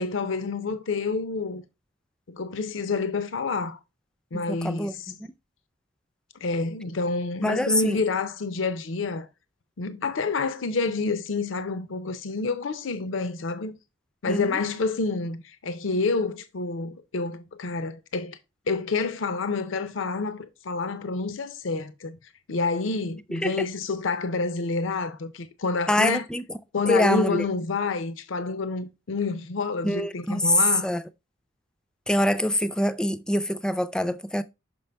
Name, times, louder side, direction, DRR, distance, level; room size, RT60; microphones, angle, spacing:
voice 1, 0.0-1.6 2.3-3.8 4.3-5.1 6.4-9.3 9.8-13.8 14.2-18.4 18.7-22.2 22.5-26.2 26.7-30.9, left 4 dB, 75° left, 0.6 m, -28 dB
voice 2, 4.3-5.2 7.4-8.0 14.3-14.5 23.3-23.7 25.9-26.4 26.9-27.4 29.8-30.5 30.8-31.0 32.1-34.4, left 1 dB, 5° left, 0.3 m, -25 dB
5.8 x 5.3 x 3.3 m
head